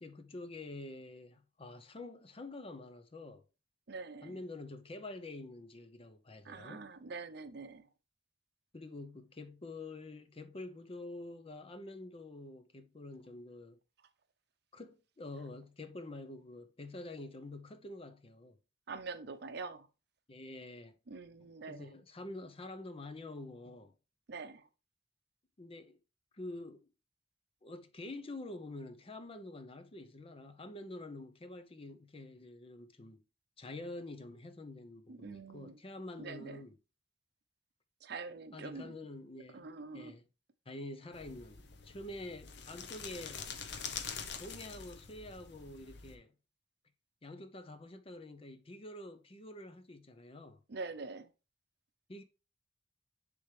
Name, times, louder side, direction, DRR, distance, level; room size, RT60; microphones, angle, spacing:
voice 1, 0.0-3.4 4.2-6.9 8.7-13.8 14.7-18.6 20.3-20.9 21.7-23.9 25.6-26.0 26.3-26.9 27.6-33.2 33.6-36.7 38.5-39.7 39.9-40.2 40.7-43.5 44.4-46.3 47.2-50.6 52.1-52.2, left 2 dB, 30° left, 0.7 m, -47 dB
voice 2, 3.9-4.4 6.4-7.9 18.9-19.9 21.1-21.9 24.3-24.7 35.1-35.8 36.2-36.6 38.0-38.9 39.5-40.2 50.7-51.3, right 4 dB, 65° right, 0.6 m, -45 dB
sound 1, 41.1-46.2, left 6 dB, 65° left, 0.8 m, -45 dB
9.8 x 3.5 x 3.2 m
head